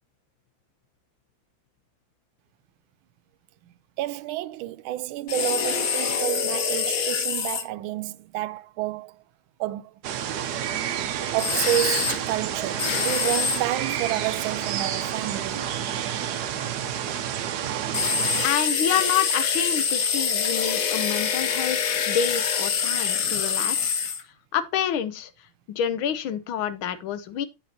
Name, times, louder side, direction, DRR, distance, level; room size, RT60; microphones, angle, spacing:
voice 1, 4.0-9.1 9.6-9.9 11.3-15.6, right 14 dB, 85° right, 1.4 m, -29 dB
sound 1, 5.3-7.6 11.4-12.2 12.8-13.6 17.9-24.2, left 6 dB, 55° left, 1.2 m, -25 dB
sound 2, 10.0-18.5, right 9 dB, 65° right, 1.1 m, -29 dB
voice 2, 18.4-24.0 24.5-25.3 25.7-27.5, left 9 dB, 90° left, 1.6 m, -28 dB
10.0 x 7.3 x 2.7 m
omnidirectional pair, 2.2 m